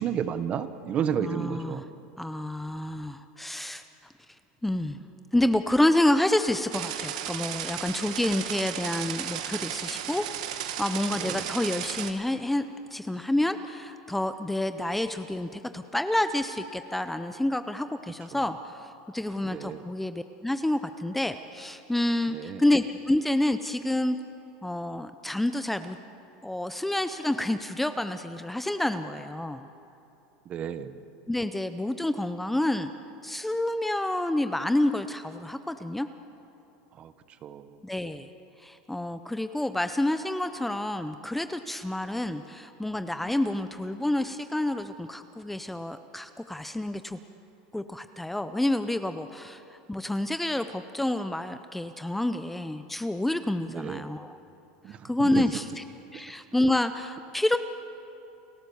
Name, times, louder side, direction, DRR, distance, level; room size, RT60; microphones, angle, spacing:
voice 1, 0.0-1.9 11.2-11.4 19.4-19.8 22.3-22.6 30.5-30.9 37.0-37.1 37.4-37.8 53.7-54.0 54.8-55.5, right 8 dB, 35° right, 12 dB, 1.0 m, -32 dB
voice 2, 1.2-1.8 2.2-3.8 4.6-5.0 5.3-12.7 12.9-24.2 24.6-26.0 26.4-29.7 31.3-32.9 33.2-36.1 37.8-38.3 38.6-47.2 47.7-54.4 54.9-55.8 56.1-57.6, left 1 dB, 5° left, 10 dB, 0.5 m, -28 dB
sound 1, 6.7-12.1, right 10 dB, 80° right, 1.5 m, -34 dB
29.5 x 14.0 x 7.1 m, 2.9 s
supercardioid pair, 145°, 4 cm